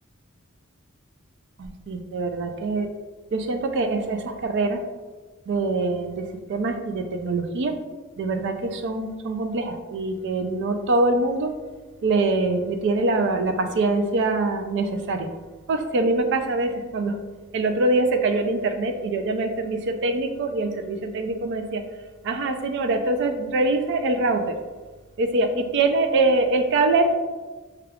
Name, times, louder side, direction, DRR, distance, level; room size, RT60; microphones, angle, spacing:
voice 1, 1.6-2.9 3.3-4.8 5.5-7.7 8.2-11.5 12.0-15.3 15.7-17.2 17.5-21.8 22.2-24.6 25.2-27.1, right 2 dB, 55° right, 7 dB, 0.4 m, -24 dB
4.8 x 2.3 x 3.4 m, 1.3 s
head